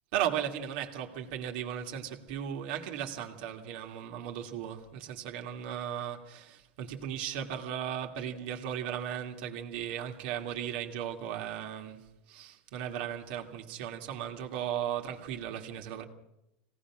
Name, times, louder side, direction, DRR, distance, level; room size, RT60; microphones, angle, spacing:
voice 1, 0.1-16.0, right 9 dB, 65° right, 2.5 m, -36 dB
25.0 x 18.0 x 6.2 m
supercardioid pair, 145°, 6 cm